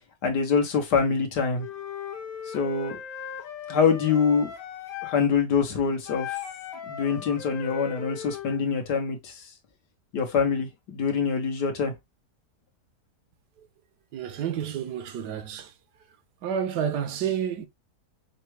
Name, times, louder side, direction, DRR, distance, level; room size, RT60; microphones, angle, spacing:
voice 1, 0.2-1.7 2.5-3.0 3.7-4.5 5.0-6.4 6.9-9.4 10.1-11.9, left 6 dB, 90° left, 1.7 m, -25 dB
Wind instrument woodwind instrument, 1.6-5.2 6.0-8.6, left 8 dB, 65° left, 1.2 m, -38 dB
voice 2, 14.1-15.7 16.4-17.7, right 8 dB, 80° right, 1.3 m, -30 dB
5.7 x 2.2 x 3.1 m
omnidirectional pair, 1.7 m